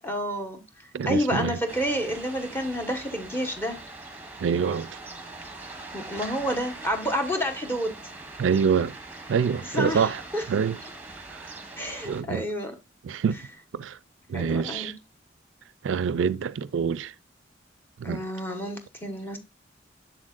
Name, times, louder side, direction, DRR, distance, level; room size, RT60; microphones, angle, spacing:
voice 1, 0.0-0.6 1.0-3.8 5.9-8.0 9.7-10.4 11.8-12.7 14.3-14.9 18.0-19.4, equal, 10° left, 1.3 m, -29 dB
voice 2, 0.9-1.6 4.4-4.9 8.4-8.9 9.3-10.2 10.5-10.8 11.3-11.4 12.0-12.4 13.0-13.4 13.7-14.0 14.3-14.9 15.8-17.1 18.0-18.2, right 6 dB, 85° right, 0.4 m, -25 dB
sound 1, 1.7-12.2, right 2 dB, 10° right, 1.2 m, -42 dB
7.3 x 7.1 x 2.4 m
head